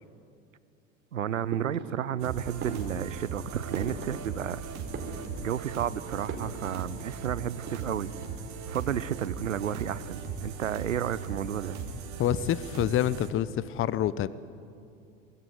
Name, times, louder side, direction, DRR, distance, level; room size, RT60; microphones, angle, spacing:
voice 1, 1.1-4.7 5.4-8.1 8.7-11.8, right 10 dB, 85° right, 18 dB, 0.9 m, -32 dB
sound 1, 1.5-2.2 2.6-4.5 4.8-5.7 6.3-6.9 7.1-7.2 7.5-8.2, right 4 dB, 30° right, 4.9 m, -40 dB
sound 2, 2.2-13.3, right 5 dB, 45° right, 4.7 m, -38 dB
voice 2, 12.2-14.3, left 11 dB, 35° left, 18 dB, 0.9 m, -27 dB
25.0 x 21.5 x 9.7 m, 2.5 s
hypercardioid pair, 80°, 37 cm